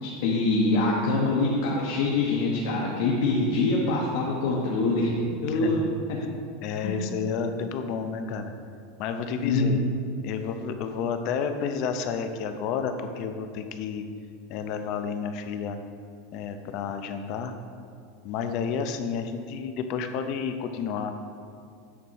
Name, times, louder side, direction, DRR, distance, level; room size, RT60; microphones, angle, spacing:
voice 1, 0.0-5.8 6.1-6.2 6.8-7.0 9.4-9.9, left 2 dB, 60° left, -3 dB, 1.1 m, -24 dB
voice 2, 5.5-6.0 6.6-8.5 9.0-9.8 10.2-14.1 14.5-15.8 16.3-17.5 18.2-21.1, left 6 dB, 40° left, 7 dB, 0.6 m, -31 dB
8.4 x 4.1 x 6.3 m, 2.3 s
supercardioid pair, 170°, 0 cm